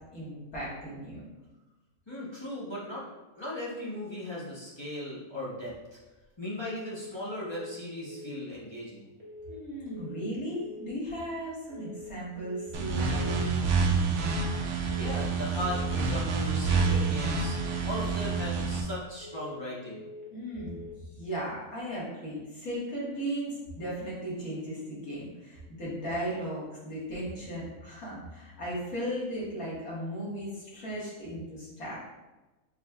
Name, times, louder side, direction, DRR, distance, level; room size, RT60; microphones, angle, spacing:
voice 1, 0.1-1.2 9.5-13.6 20.3-20.8 21.2-32.0, equal, 85° left, -7 dB, 2.0 m, -36 dB
voice 2, 2.1-3.0 3.3-6.0 6.4-9.1 14.9-17.6 17.8-20.0, left 1 dB, 25° left, -7 dB, 0.8 m, -37 dB
sound 1, 6.7-7.1 7.4-7.8 8.0-8.4 9.2-9.6 9.9-10.3 10.5-10.9 11.7-12.1 12.4-12.8 13.0-13.4 14.2-14.6 14.9-15.3 15.5-15.9 16.7-17.1 17.4-17.8 18.0-18.4 19.2-19.6 19.9-20.3 20.5-20.9, left 2 dB, 25° right, 1.3 m, -45 dB
sound 2, 12.7-18.8, right 4 dB, 65° right, 0.9 m, -28 dB
4.7 x 4.1 x 2.3 m, 1.1 s
omnidirectional pair, 1.5 m